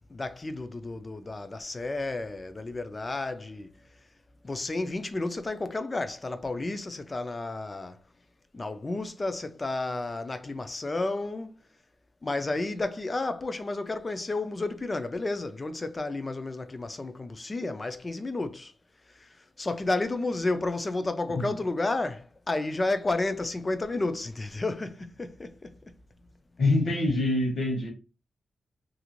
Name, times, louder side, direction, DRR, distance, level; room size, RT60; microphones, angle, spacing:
voice 1, 0.1-3.7 4.4-8.0 8.5-11.5 12.2-18.7 19.1-25.7, left 2 dB, 25° left, 0.4 m, -31 dB
voice 2, 26.6-27.9, left 2 dB, 55° left, 1.0 m, -25 dB
2.8 x 2.5 x 3.0 m
wide cardioid pair, 110°, 0 cm